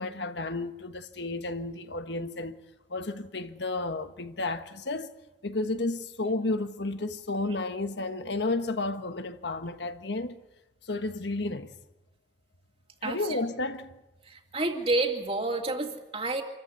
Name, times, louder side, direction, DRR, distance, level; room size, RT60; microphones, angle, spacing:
voice 1, 0.0-2.6 2.9-5.1 5.4-10.3 10.8-11.7 13.0-14.0, left 2 dB, 70° left, 1.4 m, -32 dB
voice 2, 13.0-13.4 14.2-16.4, right 2 dB, 30° right, 2.6 m, -29 dB
27.0 x 14.5 x 9.5 m
head